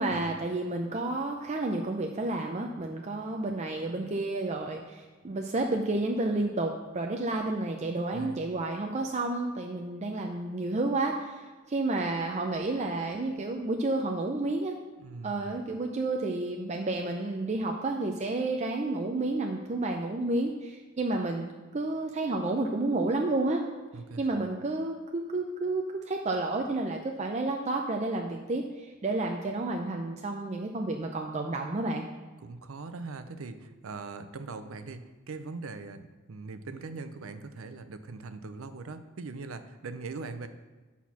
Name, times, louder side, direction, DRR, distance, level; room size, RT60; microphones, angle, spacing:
voice 1, 0.0-14.7 15.2-23.6 24.2-32.1, right 2 dB, 35° right, 2 dB, 0.5 m, -31 dB
voice 2, 8.1-8.5 15.0-15.6 23.9-24.4 32.4-40.5, right 3 dB, 85° right, 10 dB, 0.6 m, -41 dB
8.1 x 4.2 x 5.8 m, 1.3 s
head